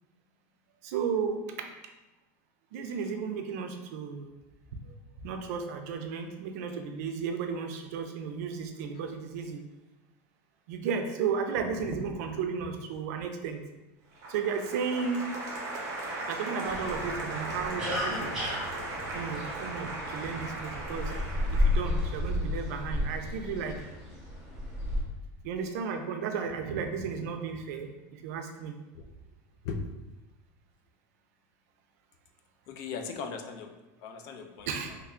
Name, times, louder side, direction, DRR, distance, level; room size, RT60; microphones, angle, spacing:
voice 1, 0.8-1.7 2.7-4.3 5.2-9.6 10.7-13.6 14.3-15.3 16.3-18.3 19.1-21.1 21.5-23.8 25.4-28.7 34.7-34.9, right 6 dB, 75° right, 5 dB, 0.4 m, -34 dB
Applause, 14.2-23.2, right 2 dB, 40° right, 0.8 m, -38 dB
sound 1, 16.6-25.0, left 1 dB, 5° right, 0.8 m, -33 dB
voice 2, 32.7-33.7 34.0-35.0, left 5 dB, 45° left, 5 dB, 0.3 m, -38 dB
3.1 x 2.2 x 3.6 m, 1.1 s
cardioid pair, 175°, 9 cm